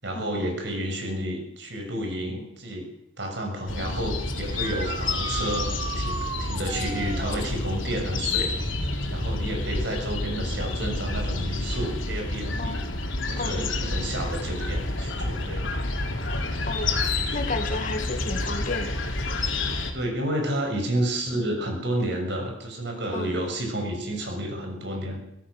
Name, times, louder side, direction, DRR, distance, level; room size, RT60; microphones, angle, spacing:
voice 1, 0.0-2.9 3.2-5.7 6.0-8.5 9.1-15.7 19.9-25.2, right 1 dB, 60° right, 2 dB, 7.1 m, -30 dB
sound 1, 3.7-19.9, left 2 dB, 75° left, 3.8 m, -29 dB
sound 2, 4.4-7.4 10.7-10.8 12.9-13.0 19.2-19.3, right 4 dB, 25° right, 1.3 m, -35 dB
voice 2, 13.4-13.7 16.7-17.0 17.3-18.9 23.1-23.3, left 2 dB, 40° left, 7 dB, 2.1 m, -32 dB
24.5 x 16.5 x 6.5 m, 0.78 s
head